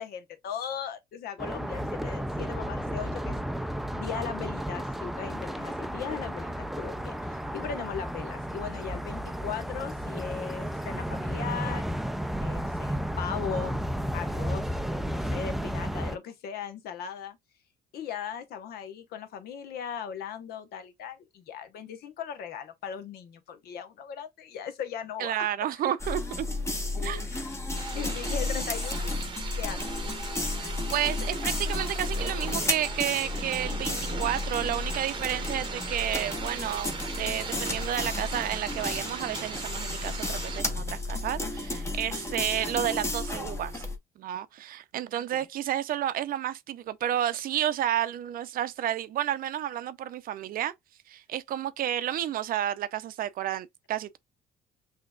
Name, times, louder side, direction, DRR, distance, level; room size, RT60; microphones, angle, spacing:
voice 1, 0.0-3.4 3.9-12.0 12.4-13.8 14.1-14.8 15.1-17.4 17.9-25.5 25.7-25.8 27.3-27.6 27.9-29.1 29.6-30.0 45.3-45.5, left 7 dB, 70° left, 0.9 m, -38 dB
sound 1, 1.4-16.2, equal, ahead, 0.3 m, -33 dB
voice 2, 25.2-26.5 27.0-27.3 30.6-43.9 44.2-50.7 51.1-54.2, right 11 dB, 60° right, 0.5 m, -31 dB
sound 2, 26.0-44.0, left 2 dB, 15° left, 1.0 m, -33 dB
sound 3, 27.8-40.6, right 5 dB, 30° right, 0.8 m, -39 dB
5.8 x 2.9 x 2.3 m
cardioid pair, 110°, 17 cm